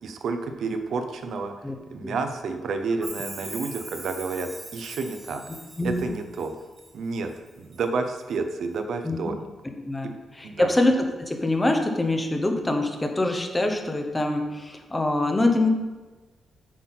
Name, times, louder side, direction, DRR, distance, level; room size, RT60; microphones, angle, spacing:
voice 1, 0.0-5.4 5.8-6.5 6.9-9.4 10.0-10.1 10.4-10.7, right 4 dB, 70° right, 7 dB, 0.7 m, -30 dB
Chime, 3.0-6.9 7.3-7.8 8.2-8.3, right 2 dB, 20° right, 1.0 m, -41 dB
voice 2, 9.8-15.7, left 2 dB, 15° left, 4 dB, 0.9 m, -24 dB
8.4 x 5.7 x 4.1 m, 1.2 s
wide cardioid pair, 130°, 0 cm